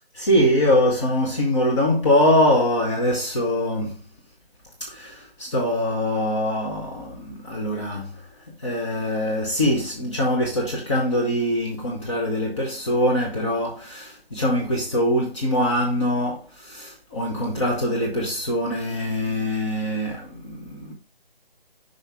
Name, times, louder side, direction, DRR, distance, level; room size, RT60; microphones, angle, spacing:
voice 1, 0.1-4.0 4.9-8.1 8.6-20.9, left 1 dB, 30° left, 1.1 m, -23 dB
5.6 x 5.4 x 3.5 m
figure-of-eight pair, 155°, 30 cm